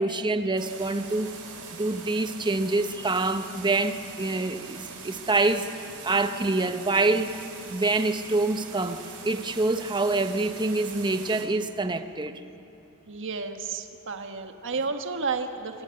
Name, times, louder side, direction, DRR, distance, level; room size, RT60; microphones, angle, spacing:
voice 1, 0.0-1.3 1.8-7.4 7.7-12.4, right 2 dB, 20° right, 9 dB, 1.0 m, -26 dB
sound 1, 0.6-11.4, right 5 dB, 85° right, 5.1 m, -42 dB
voice 2, 13.1-15.8, right 4 dB, 60° right, 6 dB, 1.6 m, -32 dB
26.0 x 20.5 x 9.1 m, 2.9 s
head